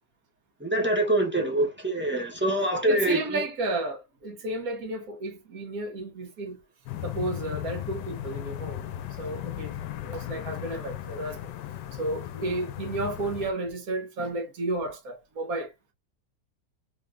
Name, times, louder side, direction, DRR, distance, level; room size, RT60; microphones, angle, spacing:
voice 1, 0.6-3.4, right 1 dB, 10° right, 0.6 m, -25 dB
voice 2, 2.9-6.6 7.0-8.9 9.2-9.7 10.0-11.4 11.9-15.7, right 2 dB, 55° right, 1.3 m, -32 dB
sound 1, 6.9-13.5, left 12 dB, 75° left, 1.2 m, -36 dB
3.6 x 3.6 x 2.5 m
omnidirectional pair, 2.0 m